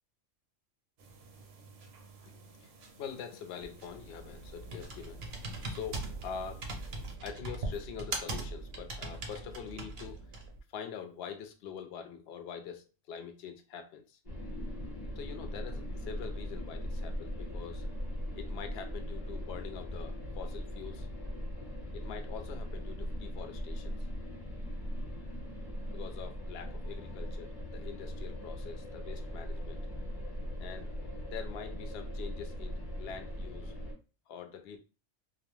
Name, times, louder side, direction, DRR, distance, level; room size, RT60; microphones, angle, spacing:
sound 1, 1.0-7.2, right 5 dB, 75° right, 0.9 m, -55 dB
voice 1, 2.3-2.7 3.0-5.2 5.7-6.7 7.2-10.2 10.7-14.2 15.2-17.9 18.4-21.1 21.9-24.1 25.9-29.8 30.6-30.9 31.3-33.7 34.3-34.8, left 7 dB, 65° left, 0.7 m, -44 dB
Computer keyboard, 3.6-10.6, right 2 dB, 55° right, 0.6 m, -40 dB
sound 2, 14.2-33.9, equal, 35° left, 1.0 m, -39 dB
2.3 x 2.1 x 3.0 m
omnidirectional pair, 1.4 m